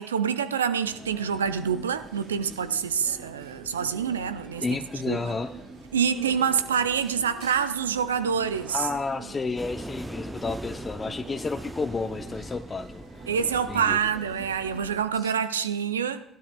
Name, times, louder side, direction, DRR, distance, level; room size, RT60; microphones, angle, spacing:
voice 1, 0.0-4.6 5.0-5.3 5.9-8.9 13.3-16.2, right 7 dB, 90° right, 0.5 m, -26 dB
sound 1, 0.8-14.9, right 3 dB, 70° right, 4.6 m, -45 dB
voice 2, 4.6-5.5 8.7-13.0 13.7-14.0 15.2-15.3, left 4 dB, 30° left, 0.6 m, -31 dB
sound 2, 9.6-15.2, right 1 dB, 10° right, 0.6 m, -40 dB
16.5 x 12.0 x 2.3 m
hypercardioid pair, 55°, 0 cm